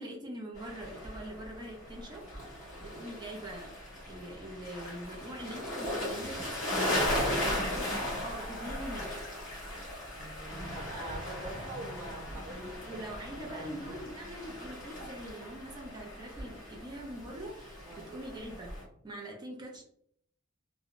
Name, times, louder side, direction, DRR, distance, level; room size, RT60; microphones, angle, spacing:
voice 1, 0.0-3.7 4.1-6.9 8.2-9.2 12.8-18.7 19.0-19.8, right 1 dB, 20° right, 0 dB, 0.4 m, -43 dB
sound 1, 0.6-18.8, left 1 dB, 35° left, 1.3 m, -37 dB
voice 2, 6.9-7.7 10.2-14.0 15.0-15.1 17.9-18.1, right 1 dB, 65° right, -4 dB, 0.6 m, -45 dB
2.8 x 2.1 x 2.5 m, 0.70 s
head